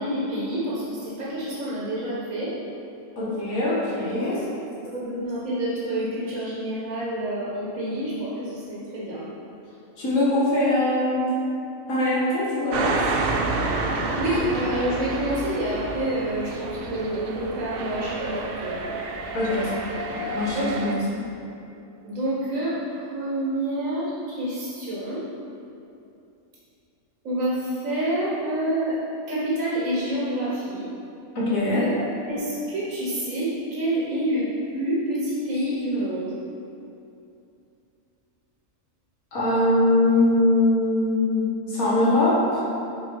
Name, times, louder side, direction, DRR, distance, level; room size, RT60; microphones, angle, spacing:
voice 1, 0.0-2.5 4.9-9.3 14.2-18.8 20.5-20.8 22.0-25.2 27.3-29.0 29.3-30.9 31.7-36.3, right 1 dB, 75° right, -7 dB, 1.7 m, -28 dB
voice 2, 3.2-4.4 10.0-11.3 11.9-13.0 19.3-19.7 20.1-21.0 31.4-31.8 39.3-42.6, left 1 dB, 75° left, -7 dB, 2.1 m, -22 dB
sound 1, 12.7-20.9, right 3 dB, 55° right, 0.7 m, -29 dB
7.8 x 4.8 x 4.6 m, 2.7 s
omnidirectional pair, 1.4 m